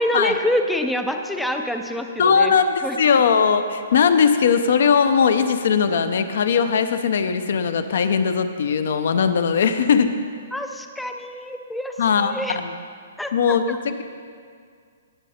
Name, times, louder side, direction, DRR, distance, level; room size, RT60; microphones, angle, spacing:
voice 1, 0.0-2.5 2.8-3.2 10.5-12.6 13.2-13.8, left 1 dB, ahead, 5 dB, 0.4 m, -26 dB
voice 2, 2.2-10.2 12.0-12.7 13.3-14.0, left 6 dB, 50° left, 9 dB, 0.5 m, -19 dB
17.5 x 6.6 x 4.3 m, 2.1 s
hypercardioid pair, 175°, 0 cm